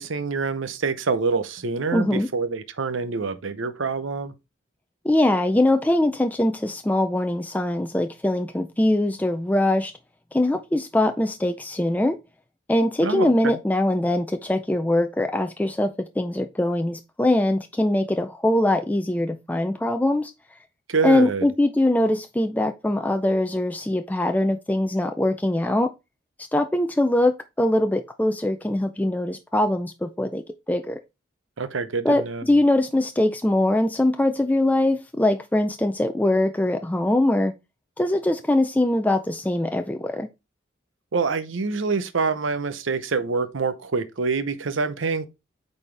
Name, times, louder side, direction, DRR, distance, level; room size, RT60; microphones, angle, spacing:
voice 1, 0.0-4.3 13.0-13.5 20.9-21.5 31.6-32.4 41.1-45.3, right 4 dB, 75° right, 0.8 m, -26 dB
voice 2, 1.9-2.3 5.0-9.9 10.3-12.2 12.7-20.3 21.0-25.9 26.5-31.0 32.0-37.5 38.0-40.3, left 1 dB, 10° left, 0.4 m, -22 dB
8.5 x 4.1 x 3.3 m
head